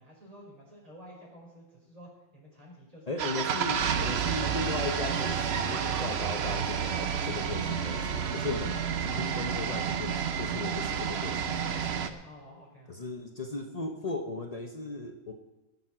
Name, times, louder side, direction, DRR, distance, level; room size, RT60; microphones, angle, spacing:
voice 1, 0.0-3.4 5.9-6.4 12.2-13.1, equal, 15° right, -2 dB, 4.3 m, -51 dB
voice 2, 3.1-12.2 12.9-15.3, left 3 dB, 80° left, 3 dB, 0.3 m, -37 dB
sound 1, 3.2-12.1, right 7 dB, 65° right, 0.6 m, -30 dB
Laughter, 3.4-4.0 4.2-4.3 4.7-7.2, right 4 dB, 90° right, 2.2 m, -45 dB
18.5 x 7.2 x 6.0 m, 1.1 s
omnidirectional pair, 2.1 m